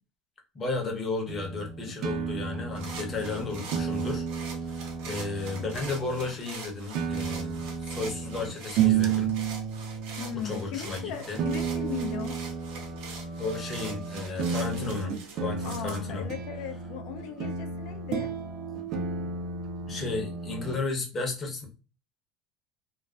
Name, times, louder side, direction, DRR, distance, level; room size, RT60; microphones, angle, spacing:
voice 1, 0.5-9.3 10.3-11.4 13.4-15.1 15.4-16.3 19.9-21.7, left 3 dB, 25° left, 0.7 m, -34 dB
sound 1, 1.3-6.3 6.9-20.8, right 6 dB, 45° right, 0.4 m, -32 dB
sound 2, 2.7-16.0, right 4 dB, 75° right, 0.8 m, -44 dB
voice 2, 10.2-12.4 15.6-18.3, left 9 dB, 65° left, 0.4 m, -37 dB
2.3 x 2.3 x 2.3 m
cardioid pair, 150°, 0 cm